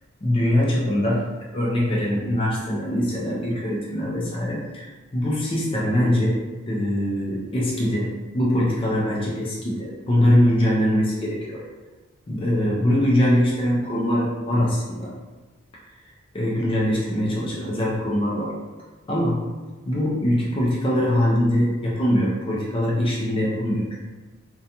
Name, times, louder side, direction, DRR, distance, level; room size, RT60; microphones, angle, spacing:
voice 1, 0.2-1.2 1.5-4.9 5.1-11.6 12.3-15.1 16.0-18.5 19.1-19.5 19.9-24.0, left 1 dB, 25° left, -5 dB, 0.4 m, -22 dB
2.5 x 2.2 x 2.7 m, 1.2 s
head